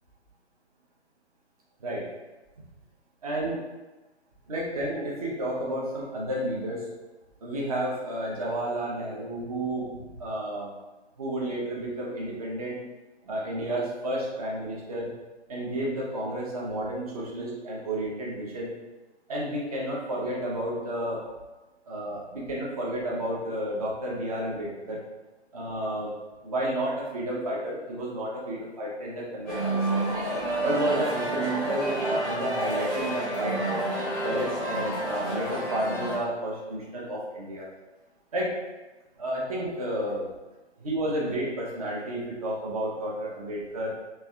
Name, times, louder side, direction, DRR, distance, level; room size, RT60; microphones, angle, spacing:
voice 1, 3.2-3.6 4.5-6.9 7.4-9.9 10.2-10.7 11.2-12.8 13.2-15.1 15.5-18.7 19.3-21.2 21.9-25.0 25.5-26.1 26.4-30.0 30.6-33.8 34.2-37.6 38.3-38.5 39.2-40.2 40.8-43.9, right 1 dB, 35° right, -4 dB, 0.8 m, -31 dB
sound 1, 29.5-36.2, right 1 dB, 10° left, 0.7 m, -29 dB
3.3 x 3.2 x 2.3 m, 1.1 s
figure-of-eight pair, 140°, 34 cm